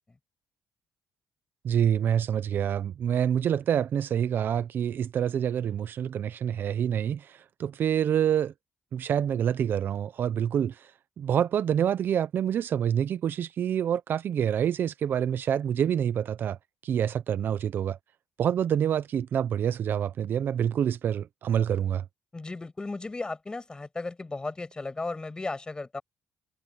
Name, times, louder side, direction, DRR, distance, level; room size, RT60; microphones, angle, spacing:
voice 1, 1.6-8.5 8.9-10.9 11.2-16.6 16.8-18.0 18.4-22.0, right 9 dB, 60° right, 0.8 m, -27 dB
voice 2, 22.3-26.0, left 3 dB, 20° left, 7.0 m, -35 dB
cardioid pair, 90°, 4 cm